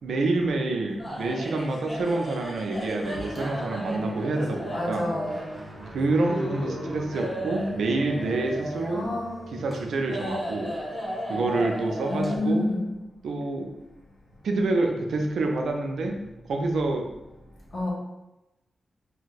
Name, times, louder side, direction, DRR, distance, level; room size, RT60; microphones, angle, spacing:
voice 1, 0.0-5.1 5.9-9.0 9.5-10.7 11.3-12.6 13.2-13.7 14.4-16.1 16.5-17.0, right 2 dB, 80° right, 3 dB, 0.4 m, -27 dB
sound 1, 1.0-12.4, equal, 25° left, 1.2 m, -35 dB
Guitar, 3.0-10.7, equal, 30° right, 0.7 m, -44 dB
voice 2, 4.7-5.4 8.9-9.4 12.1-12.9 17.7-17.9, left 2 dB, 55° left, -4 dB, 1.1 m, -28 dB
2.6 x 2.2 x 4.0 m, 0.95 s
cardioid pair, 60°, 0 cm